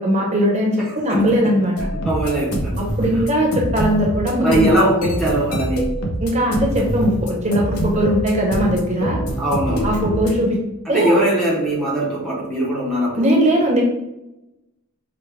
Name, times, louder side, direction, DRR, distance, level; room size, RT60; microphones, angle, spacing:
voice 1, 0.0-1.7 3.0-4.7 6.2-9.2 9.8-10.6 10.9-11.1 13.2-13.8, equal, 30° right, -1 dB, 0.8 m, -19 dB
voice 2, 0.8-1.3 1.9-2.8 3.1-3.2 4.4-5.9 9.4-10.0 10.9-13.3, right 1 dB, ahead, -5 dB, 0.6 m, -21 dB
sound 1, 1.8-10.3, equal, 80° left, 0.8 m, -25 dB
5.0 x 2.1 x 3.2 m, 0.92 s
head